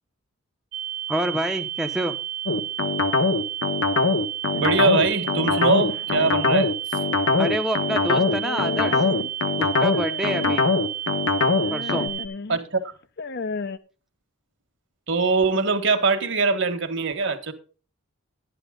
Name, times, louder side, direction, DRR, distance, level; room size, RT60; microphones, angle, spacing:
sound 1, 0.7-12.3, right 11 dB, 90° right, 1.4 m, -32 dB
voice 1, 1.1-2.2 7.4-9.1 9.6-10.7 11.7-12.1, equal, ahead, 0.7 m, -27 dB
sound 2, 2.5-12.1, left 3 dB, 70° left, 1.2 m, -22 dB
sound 3, 4.5-6.3 6.9-7.4 8.1-9.5 9.9-10.7 11.4-12.6 13.0-13.8, left 4 dB, 50° left, 0.6 m, -35 dB
voice 2, 4.5-6.7 12.5-12.9 15.1-17.5, right 4 dB, 55° right, 1.5 m, -22 dB
12.0 x 10.0 x 3.8 m
head